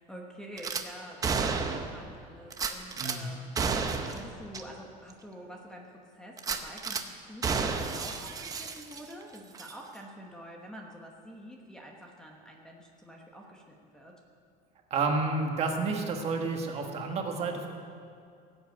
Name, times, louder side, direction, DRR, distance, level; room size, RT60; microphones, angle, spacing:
voice 1, 0.0-14.1, equal, 5° left, -1 dB, 1.1 m, -47 dB
Gunshot gunfire / Glass, 0.6-0.8 1.2-2.0 2.5-3.2 3.6-4.2 4.5-4.6 5.1-5.2 6.4-7.0 7.4-9.2 9.5-9.7, right 5 dB, 20° right, 0.7 m, -31 dB
voice 2, 3.0-3.3 14.9-17.7, right 3 dB, 35° right, 2 dB, 1.5 m, -30 dB
18.0 x 8.0 x 8.2 m, 2.4 s
cardioid pair, 180°, 18 cm